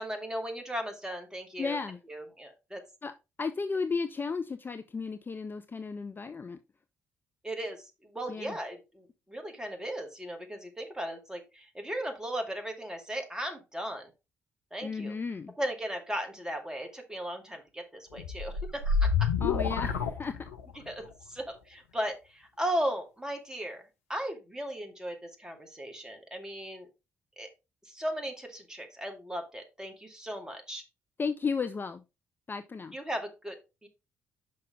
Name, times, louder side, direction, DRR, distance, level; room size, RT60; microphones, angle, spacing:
voice 1, 0.0-1.8 2.1-2.8 7.4-14.1 14.7-15.1 15.6-19.3 20.9-23.8 24.1-26.9 27.4-27.5 27.8-30.8 32.9-33.6 33.8-33.9, equal, 10° right, 4 dB, 2.1 m, -37 dB
voice 2, 1.6-2.0 3.0-3.1 3.4-6.6 8.3-8.6 14.8-15.5 19.4-20.5 31.2-32.0 32.5-32.9, left 4 dB, 30° left, 9 dB, 0.5 m, -34 dB
sound 1, 18.2-20.9, left 5 dB, 75° left, 0.6 m, -28 dB
6.5 x 5.5 x 3.5 m, 0.26 s
figure-of-eight pair, 40°, 7 cm